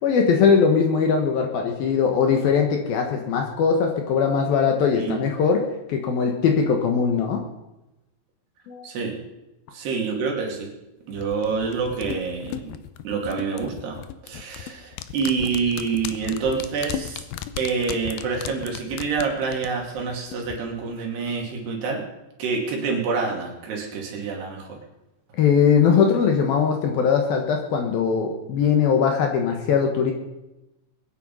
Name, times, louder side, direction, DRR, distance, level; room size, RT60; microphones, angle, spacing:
voice 1, 0.0-5.6 5.9-7.4 8.7-8.8 25.3-30.1, left 6 dB, 65° left, 3 dB, 2.7 m, -20 dB
voice 2, 8.8-9.2 9.7-10.7 11.1-12.7 13.0-17.3 17.6-22.0 22.4-24.8, right 5 dB, 65° right, 0 dB, 4.5 m, -27 dB
sound 1, 11.2-20.6 20.9-21.0, left 12 dB, 85° left, 2.1 m, -36 dB
22.0 x 9.9 x 5.5 m, 0.97 s
omnidirectional pair, 5.3 m